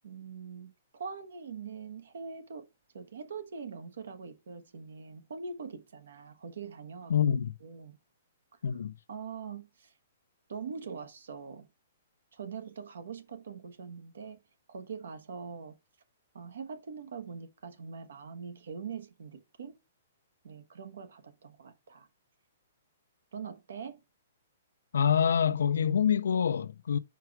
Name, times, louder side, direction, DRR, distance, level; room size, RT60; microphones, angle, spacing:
voice 1, 0.0-2.7 2.9-7.1 7.6-8.0 9.1-9.9 10.5-11.7 12.3-14.4 14.7-15.8 16.3-19.8 20.4-22.1 23.3-24.0, right 5 dB, 80° right, 1.2 m, -43 dB
voice 2, 7.1-7.5 8.6-8.9 24.9-27.0, left 8 dB, 85° left, 0.4 m, -26 dB
4.8 x 4.6 x 4.7 m
hypercardioid pair, 155°, 0 cm